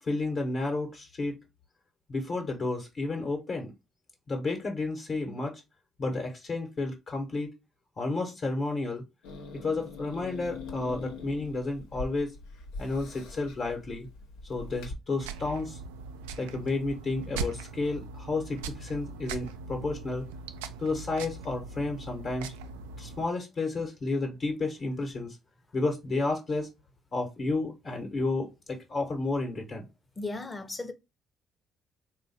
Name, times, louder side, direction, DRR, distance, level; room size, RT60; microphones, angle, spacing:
voice 1, 0.0-1.4 2.1-3.7 4.3-5.6 6.0-7.5 8.0-9.0 9.5-12.4 12.8-14.1 14.4-15.8 16.4-20.3 20.8-22.5 23.0-25.4 25.7-26.7 27.1-29.8, left 3 dB, 50° left, 1.1 m, -31 dB
Growling / Hiss, 9.2-14.9, left 3 dB, 80° left, 0.8 m, -42 dB
sound 1, 15.2-23.2, right 4 dB, 90° right, 0.3 m, -40 dB
voice 2, 30.2-30.9, left 2 dB, 25° left, 0.8 m, -35 dB
3.4 x 2.5 x 4.1 m
hypercardioid pair, 55°, 0 cm